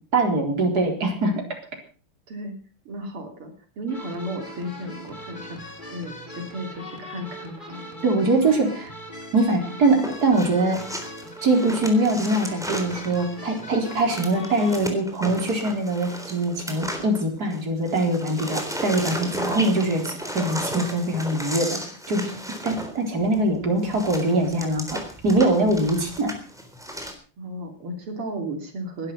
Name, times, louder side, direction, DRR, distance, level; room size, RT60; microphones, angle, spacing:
voice 1, 0.1-1.4 8.0-8.9 9.3-10.8 11.4-21.8 22.1-22.3 22.6-26.3, right 2 dB, 45° right, 2 dB, 4.5 m, -23 dB
voice 2, 2.9-7.9 25.6-25.9 27.4-29.1, right 1 dB, 85° right, 3 dB, 3.8 m, -34 dB
sound 1, 3.9-14.8, equal, 20° left, 3.5 m, -40 dB
sound 2, 9.9-17.6 17.9-27.1, equal, ahead, 3.7 m, -34 dB
20.0 x 11.5 x 5.8 m, 0.41 s
omnidirectional pair, 2.3 m